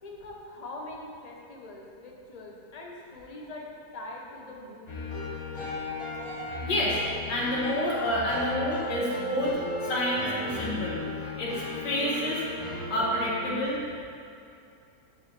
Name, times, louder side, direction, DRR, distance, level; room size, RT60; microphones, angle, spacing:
voice 1, 0.0-3.7 3.9-5.0, left 2 dB, 35° left, -1 dB, 0.7 m, -43 dB
sound 1, 4.9-13.5, left 2 dB, 20° left, 1.3 m, -35 dB
voice 2, 6.6-7.0 7.3-12.4 12.9-13.8, left 1 dB, 70° left, -5 dB, 2.0 m, -29 dB
13.0 x 4.6 x 3.3 m, 2.6 s
omnidirectional pair, 1.9 m